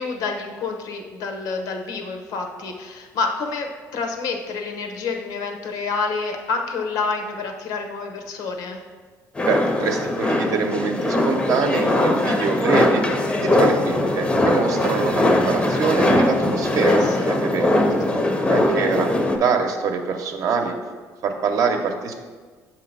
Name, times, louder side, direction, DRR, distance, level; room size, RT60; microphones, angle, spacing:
voice 1, 0.0-8.8 16.8-17.3 17.7-18.2, left 4 dB, 80° left, 4 dB, 0.8 m, -28 dB
sound 1, 9.4-19.4, left 1 dB, 15° left, 0.6 m, -20 dB
voice 2, 9.4-13.0 13.4-17.7 18.5-20.7 21.2-22.1, right 5 dB, 60° right, 4 dB, 0.7 m, -24 dB
7.0 x 2.8 x 5.4 m, 1.5 s
cardioid pair, 115°, 6 cm